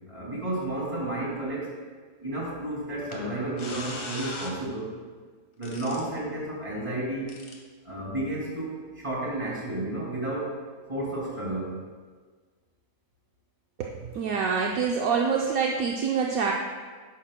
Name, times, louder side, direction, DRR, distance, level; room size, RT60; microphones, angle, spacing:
voice 1, 0.1-1.8 2.2-4.9 5.6-7.4 7.8-10.6 10.9-11.8, right 1 dB, 20° right, -5 dB, 2.5 m, -32 dB
sound 1, 3.1-3.2 3.6-4.5 5.6-6.0 7.3-7.6, left 2 dB, 65° left, 1.6 m, -38 dB
voice 2, 13.8-16.5, right 6 dB, 70° right, 0 dB, 1.1 m, -26 dB
11.5 x 9.4 x 2.2 m, 1.5 s
omnidirectional pair, 1.6 m